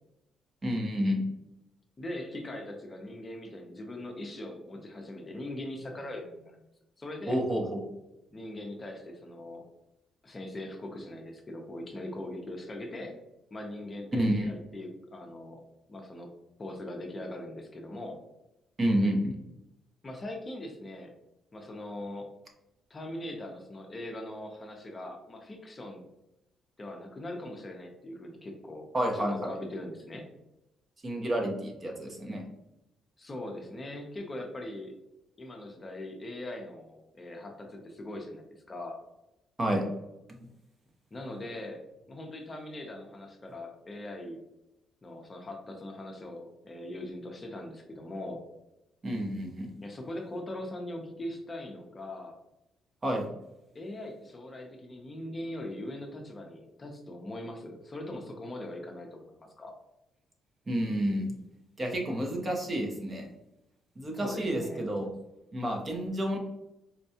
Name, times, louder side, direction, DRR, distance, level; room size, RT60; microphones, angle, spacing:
voice 1, 0.6-1.2 7.3-7.8 14.1-14.5 18.8-19.4 28.9-29.6 31.0-32.4 39.6-39.8 49.0-49.7 53.0-53.3 60.7-61.3 61.8-63.3 64.0-65.1 65.5-66.4, equal, 30° right, 1 dB, 0.8 m, -29 dB
voice 2, 2.0-6.6 7.0-7.4 8.3-9.6 10.2-13.1 13.5-15.6 15.9-16.3 16.6-18.2 20.0-21.1 21.5-22.3 22.9-26.0 26.8-28.9 29.1-30.3 33.2-34.9 35.4-39.0 41.1-41.8 42.1-44.4 45.0-48.4 49.8-52.4 53.7-59.7 64.2-64.9, left 1 dB, 30° left, 2 dB, 0.6 m, -41 dB
4.3 x 2.2 x 2.7 m, 0.91 s
cardioid pair, 90°, 0 cm